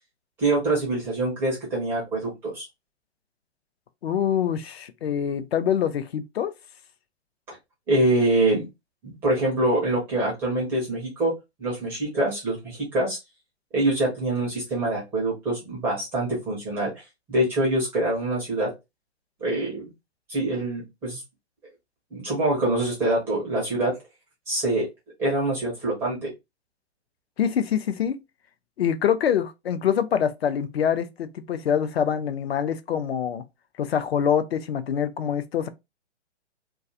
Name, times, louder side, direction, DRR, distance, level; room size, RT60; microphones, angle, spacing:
voice 1, 0.4-2.7 7.9-8.7 9.0-11.3 11.6-13.2 13.7-18.7 19.4-19.9 20.3-21.2 22.1-23.9 24.5-24.9 25.2-26.3, right 2 dB, 5° right, 0.4 m, -25 dB
voice 2, 4.0-6.5 27.4-28.2 28.8-33.4 33.8-35.7, left 8 dB, 60° left, 0.5 m, -25 dB
2.4 x 2.3 x 2.5 m
figure-of-eight pair, 125°, 35 cm